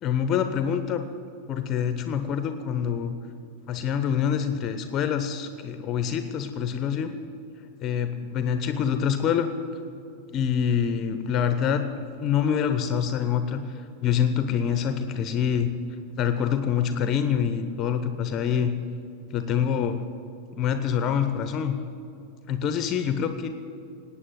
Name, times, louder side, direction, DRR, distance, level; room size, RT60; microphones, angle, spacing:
voice 1, 0.0-1.0 1.5-3.1 3.7-7.1 7.8-9.5 10.3-15.7 16.2-18.7 19.3-20.0 20.5-21.8 22.5-23.5, left 8 dB, 35° left, 9 dB, 0.9 m, -26 dB
19.0 x 8.6 x 7.5 m, 2.8 s
figure-of-eight pair, 90°, 0 cm